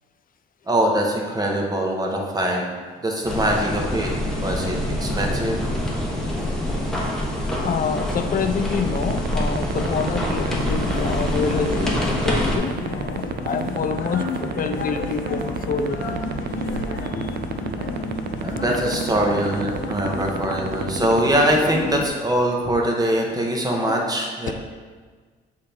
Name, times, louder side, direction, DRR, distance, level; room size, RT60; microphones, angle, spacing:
voice 1, 0.7-2.7 3.0-4.1 4.4-5.6 18.4-24.5, right 1 dB, 20° right, 0 dB, 1.2 m, -22 dB
sound 1, 3.2-12.6, left 1 dB, ahead, 1.3 m, -25 dB
voice 2, 7.6-16.2 17.0-17.4 17.9-18.1 18.3-18.6 24.5-24.6, left 6 dB, 45° left, 8 dB, 0.5 m, -27 dB
sound 2, 8.9-21.3, right 12 dB, 55° right, 0.4 m, -27 dB
sound 3, 10.6-22.1, left 2 dB, 80° left, 1.0 m, -31 dB
7.6 x 3.6 x 4.4 m, 1.5 s
cardioid pair, 90°, 20 cm